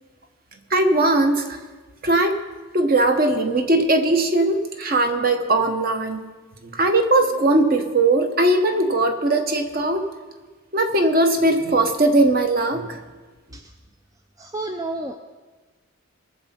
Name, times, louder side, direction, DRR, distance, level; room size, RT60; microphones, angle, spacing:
voice 1, 0.7-1.6 2.0-2.4 2.7-6.2 6.6-10.1 10.7-13.0, right 2 dB, 45° right, 6 dB, 1.0 m, -19 dB
voice 2, 14.4-15.1, right 2 dB, 15° right, 5 dB, 0.4 m, -30 dB
20.0 x 7.1 x 4.4 m, 1.3 s
head